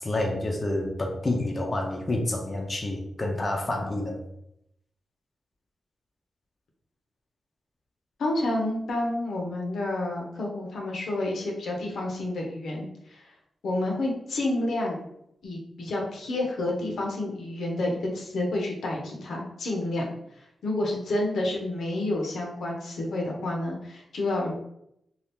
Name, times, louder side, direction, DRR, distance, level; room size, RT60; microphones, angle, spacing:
voice 1, 0.0-4.2, left 1 dB, 25° left, 0 dB, 0.5 m, -28 dB
voice 2, 8.2-13.3 13.6-15.0 15.4-24.5, left 1 dB, 85° left, 0 dB, 0.7 m, -29 dB
2.7 x 2.3 x 3.5 m, 0.77 s
wide cardioid pair, 125°, 0 cm